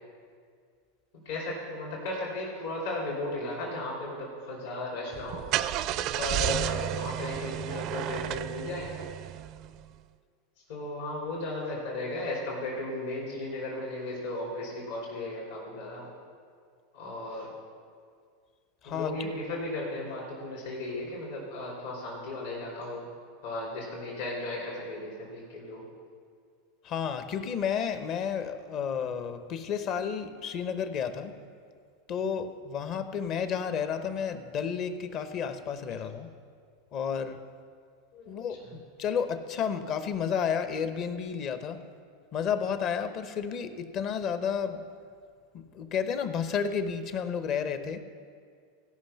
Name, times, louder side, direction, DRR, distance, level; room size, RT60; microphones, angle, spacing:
voice 1, 1.2-5.5 6.2-8.9 10.7-16.1 16.9-17.5 18.8-23.1 23.4-25.8 38.1-38.7, left 2 dB, 75° left, -4 dB, 2.9 m, -35 dB
Car / Engine starting, 5.1-9.8, right 12 dB, 50° right, 0.4 m, -32 dB
voice 2, 18.8-19.3 26.8-31.3 32.1-36.3 36.9-37.4 38.3-41.8 42.3-44.8 45.5-48.0, left 7 dB, 45° left, 10 dB, 0.8 m, -31 dB
17.0 x 5.6 x 5.7 m, 2.1 s
hypercardioid pair, 110°, 0 cm